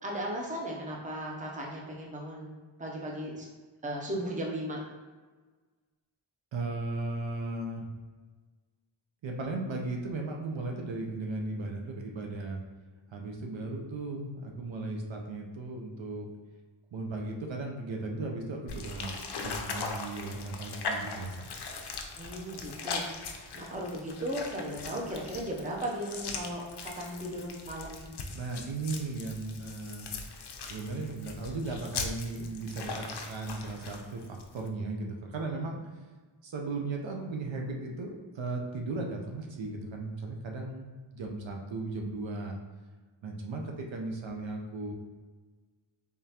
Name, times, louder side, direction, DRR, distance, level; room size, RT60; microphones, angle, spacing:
voice 1, 0.0-2.5 2.8-3.5 3.8-4.8 22.2-28.1, right 1 dB, 15° right, -2 dB, 0.6 m, -36 dB
voice 2, 6.5-7.9 9.2-12.6 13.1-16.3 16.9-21.5 28.3-30.1 30.6-35.8 36.4-40.9 41.1-42.6 43.2-44.9, right 3 dB, 65° right, 2 dB, 0.6 m, -36 dB
sound 1, 18.7-34.7, left 4 dB, 55° left, 0.5 m, -40 dB
3.6 x 3.5 x 2.8 m, 1.4 s
wide cardioid pair, 135°, 49 cm